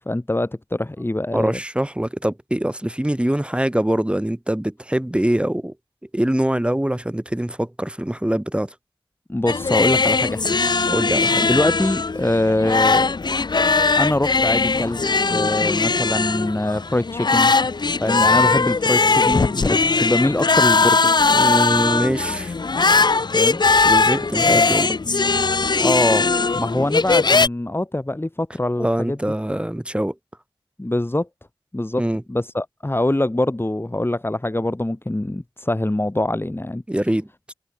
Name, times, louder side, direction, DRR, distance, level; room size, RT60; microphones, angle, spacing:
voice 1, 0.1-1.6 9.3-10.6 11.5-13.1 14.0-15.0 15.3-17.5 18.0-21.0 23.3-23.6 24.4-24.7 25.8-29.2 30.8-31.3 31.7-32.0 32.3-36.8, left 1 dB, 25° left, 4.3 m, -23 dB
voice 2, 1.3-5.7 6.1-8.7 10.9-11.4 21.3-22.5 23.8-24.9 28.8-30.1 32.0-32.2 36.9-37.5, right 1 dB, 10° right, 1.5 m, -23 dB
sound 1, 9.5-27.5, left 4 dB, 55° left, 0.8 m, -19 dB
cardioid pair, 40°, 9 cm